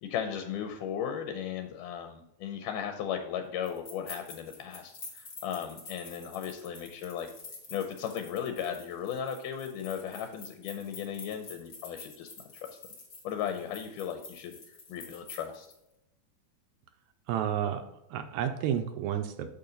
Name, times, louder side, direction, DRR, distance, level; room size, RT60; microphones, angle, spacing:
voice 1, 0.0-7.3 7.7-12.3 12.7-12.8 13.2-14.6 14.9-15.7, left 8 dB, 85° left, 6 dB, 2.3 m, -36 dB
sound 1, 3.6-15.8, left 3 dB, 35° left, 1.7 m, -48 dB
voice 2, 17.3-17.8 18.1-19.5, right 9 dB, 80° right, 7 dB, 1.7 m, -31 dB
7.0 x 5.7 x 3.9 m, 0.88 s
omnidirectional pair, 3.7 m